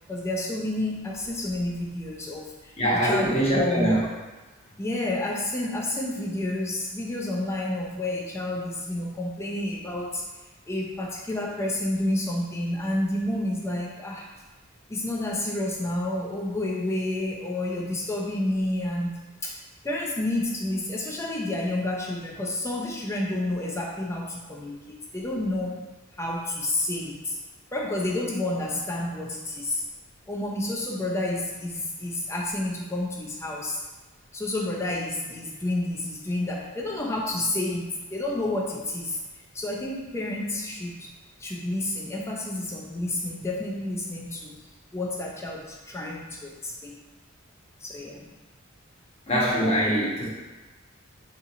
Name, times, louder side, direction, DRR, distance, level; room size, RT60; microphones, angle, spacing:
voice 1, 0.1-2.7 3.0-4.0 4.8-10.2 10.7-14.3 14.9-19.6 19.8-25.8 26.2-27.4 27.7-29.8 30.3-33.8 34.3-39.2 39.5-41.1 41.4-44.5 44.9-47.0 47.8-48.3, left 1 dB, 15° left, -2 dB, 0.4 m, -30 dB
voice 2, 2.8-4.0 49.3-50.3, equal, 30° left, -6 dB, 0.9 m, -23 dB
3.7 x 2.9 x 2.6 m, 1.2 s
head